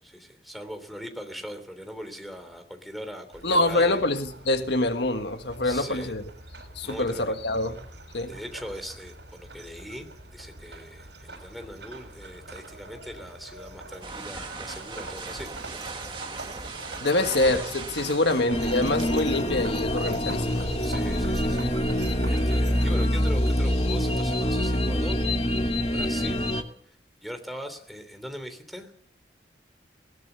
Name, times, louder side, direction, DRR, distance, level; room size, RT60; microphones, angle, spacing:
voice 1, 0.0-4.0 5.6-6.1 6.8-7.4 8.3-15.5 18.2-18.4 20.8-25.3 25.9-26.5 26.9-27.0 27.2-28.9, equal, ahead, 3.2 m, -40 dB
sound 1, 3.3-22.9, right 2 dB, 75° right, 7.0 m, -44 dB
voice 2, 3.4-6.2 6.7-7.8 8.1-8.3 17.0-20.7, left 2 dB, 75° left, 1.6 m, -25 dB
sound 2, 14.0-19.4, right 4 dB, 25° right, 2.0 m, -39 dB
sound 3, 18.5-26.6, equal, 35° left, 1.9 m, -25 dB
20.5 x 19.0 x 6.9 m
head